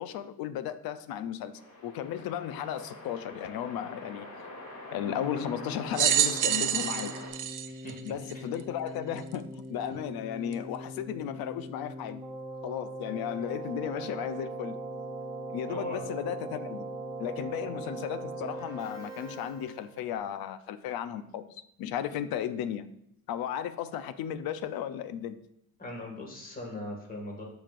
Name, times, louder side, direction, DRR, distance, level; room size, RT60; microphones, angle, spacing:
voice 1, 0.0-4.3 4.9-7.1 8.1-12.2 12.6-14.8 15.5-16.9 17.2-22.9 23.3-25.4, left 9 dB, 90° left, 12 dB, 0.6 m, -35 dB
sound 1, 1.5-7.3, left 2 dB, 55° left, 2.7 m, -45 dB
Keyboard (musical), 5.0-20.1, right 2 dB, 10° right, 1.6 m, -41 dB
sound 2, 5.9-8.6 9.3-9.4 10.5-10.6, right 11 dB, 60° right, 0.6 m, -27 dB
voice 2, 15.7-16.0 17.4-17.5 25.8-27.4, left 1 dB, 25° left, 0 dB, 2.0 m, -39 dB
13.5 x 5.1 x 2.5 m, 0.74 s
cardioid pair, 120°, 35 cm